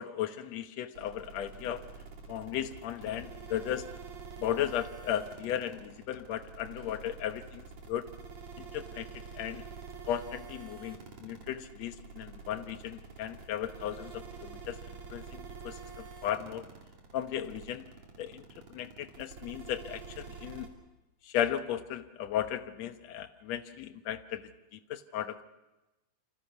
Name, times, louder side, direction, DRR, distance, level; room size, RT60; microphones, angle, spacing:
voice 1, 0.0-1.8 2.3-3.9 4.4-8.0 8.7-9.1 9.3-9.6 10.1-14.8 15.1-16.6 17.1-17.9 18.2-18.4 18.7-20.7 21.3-24.4 24.7-25.4, left 10 dB, 70° left, 9 dB, 2.2 m, -35 dB
sound 1, 0.9-20.7, right 5 dB, 65° right, 4.2 m, -47 dB
28.5 x 25.5 x 6.0 m, 1.0 s
omnidirectional pair, 3.3 m